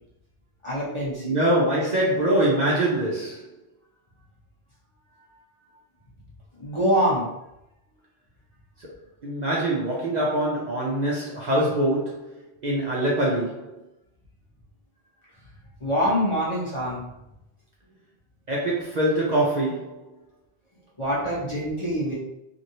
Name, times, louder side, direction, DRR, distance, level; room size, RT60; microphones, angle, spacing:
voice 1, 0.6-1.4 6.6-7.3 15.8-17.0 21.0-22.1, equal, 30° left, -7 dB, 0.8 m, -25 dB
voice 2, 1.2-3.5 8.8-8.9 9.2-13.8 18.5-20.1, right 1 dB, 50° right, -5 dB, 0.6 m, -24 dB
3.0 x 2.6 x 2.7 m, 0.85 s
omnidirectional pair, 1.1 m